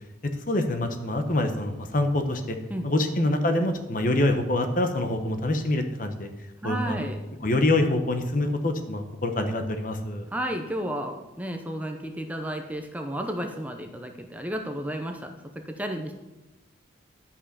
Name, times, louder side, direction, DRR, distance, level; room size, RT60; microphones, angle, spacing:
voice 1, 0.5-2.6 2.8-6.3 6.6-7.0 7.4-10.2, left 1 dB, 45° left, 7 dB, 1.0 m, -25 dB
voice 2, 2.7-3.2 6.6-7.2 10.3-15.3 15.7-16.1, equal, 10° right, 4 dB, 0.7 m, -32 dB
11.5 x 5.5 x 6.8 m, 1.1 s
head